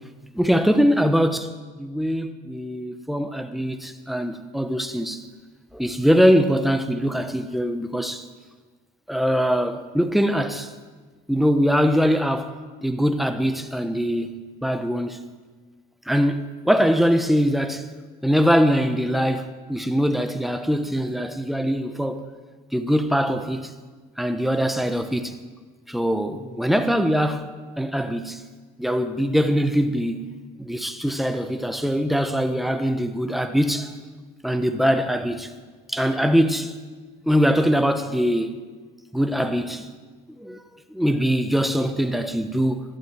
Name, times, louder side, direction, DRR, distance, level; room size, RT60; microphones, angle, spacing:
voice 1, 0.3-1.5 1.8-5.2 5.7-8.2 9.1-10.7 11.3-12.5 12.8-15.2 16.1-17.8 18.2-22.2 22.7-23.7 24.2-25.3 25.9-28.4 28.8-30.3 30.6-33.9 34.4-35.5 35.9-36.7 37.3-38.6 39.1-39.9 40.4-40.6 40.9-42.8, equal, ahead, 1.2 m, -22 dB
12.5 x 11.5 x 9.3 m
cardioid pair, 110°, 17 cm